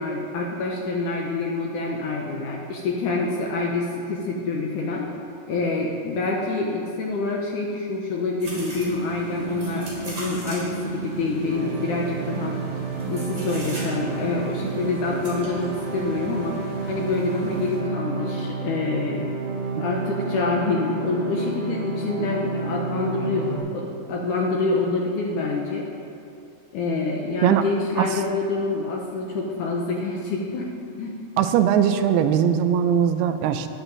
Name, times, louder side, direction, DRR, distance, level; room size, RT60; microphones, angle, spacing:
voice 1, 0.0-5.1 5.5-12.6 13.1-16.6 16.9-19.4 19.7-25.9 26.7-30.7 31.0-31.2, left 3 dB, 70° left, -1 dB, 2.0 m, -26 dB
sound 1, 8.4-17.8, right 2 dB, 20° right, 3.0 m, -35 dB
sound 2, 11.5-23.6, right 4 dB, 65° right, 2.7 m, -30 dB
voice 2, 31.4-33.7, right 9 dB, 85° right, 9 dB, 2.6 m, -20 dB
14.0 x 9.9 x 3.9 m, 2.7 s
omnidirectional pair, 4.5 m